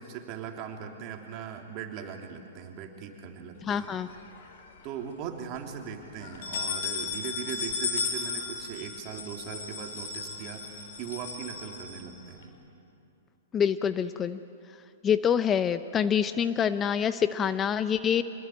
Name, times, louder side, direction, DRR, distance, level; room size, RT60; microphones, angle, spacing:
voice 1, 0.0-3.9 4.8-12.5, right 8 dB, 40° right, 3 dB, 3.3 m, -39 dB
voice 2, 3.7-4.1 13.5-14.4 15.0-18.2, left 8 dB, 20° left, 12 dB, 0.7 m, -26 dB
sound 1, 3.8-4.7 5.1-5.2 5.5-5.6 6.2-12.4, left 5 dB, 60° left, 4.1 m, -35 dB
26.0 x 20.0 x 9.2 m, 2.7 s
hypercardioid pair, 120°, 0 cm